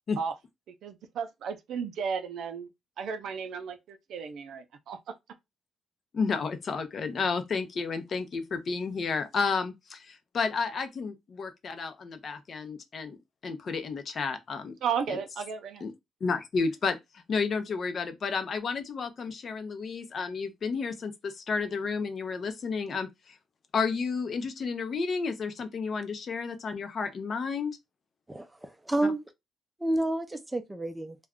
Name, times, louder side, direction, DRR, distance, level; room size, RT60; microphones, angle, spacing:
voice 1, 0.8-2.7 3.0-5.0 14.8-15.9, right 6 dB, 75° right, 0.5 m, -34 dB
voice 2, 6.1-13.2 13.4-14.7 15.1-15.2 15.8-15.9 16.2-17.0 17.3-23.1 23.7-27.8, left 5 dB, 50° left, 0.6 m, -31 dB
voice 3, 28.3-29.2 29.8-31.2, right 1 dB, 10° right, 0.5 m, -30 dB
2.3 x 2.2 x 3.5 m
cardioid pair, 90°, 0 cm